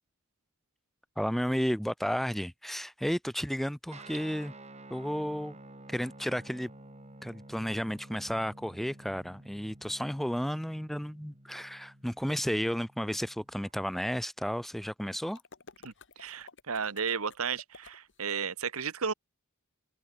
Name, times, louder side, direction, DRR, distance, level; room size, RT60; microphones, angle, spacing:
voice 1, 1.2-4.5 4.9-5.6 5.9-6.7 7.2-15.4, equal, ahead, 0.7 m, -32 dB
Guitar, 3.9-13.7, right 2 dB, 30° right, 5.5 m, -52 dB
sound 1, 15.3-18.3, left 4 dB, 60° left, 2.7 m, -53 dB
voice 2, 15.8-19.1, right 6 dB, 75° right, 1.4 m, -34 dB
open air
head